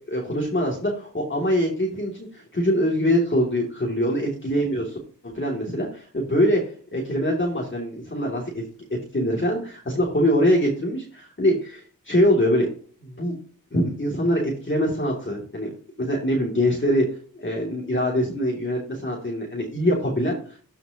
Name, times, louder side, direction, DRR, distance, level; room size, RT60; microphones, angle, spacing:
voice 1, 0.1-5.0 5.2-6.6 6.9-8.6 8.9-12.7 13.0-13.4 13.7-17.0 17.3-20.6, equal, 35° left, -2 dB, 2.6 m, -23 dB
13.0 x 5.7 x 2.9 m, 0.42 s
wide cardioid pair, 65°, 34 cm